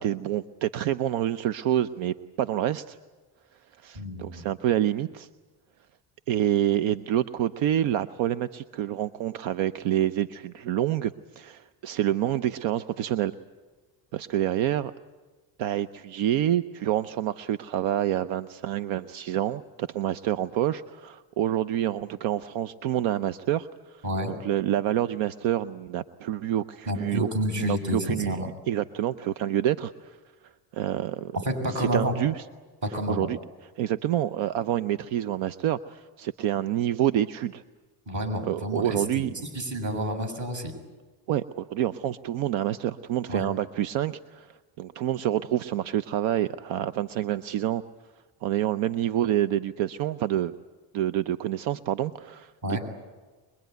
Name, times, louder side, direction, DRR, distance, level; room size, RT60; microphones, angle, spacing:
voice 1, 0.0-3.0 3.8-5.3 6.3-13.3 14.1-14.9 15.6-24.0 24.3-27.3 27.6-28.4 28.7-30.2 30.7-31.4 31.7-32.4 33.1-33.4 33.8-37.6 38.5-39.3 41.3-44.5 44.8-47.8 48.4-50.5 50.9-52.8, right 12 dB, 75° right, 14 dB, 0.8 m, -27 dB
voice 2, 3.9-4.4 24.0-24.4 26.9-28.5 31.4-32.1 32.8-33.3 38.1-40.7 43.3-43.4 52.6-52.8, equal, 40° right, 5 dB, 6.8 m, -29 dB
24.5 x 21.5 x 9.3 m, 1.3 s
cardioid pair, 105°, 47 cm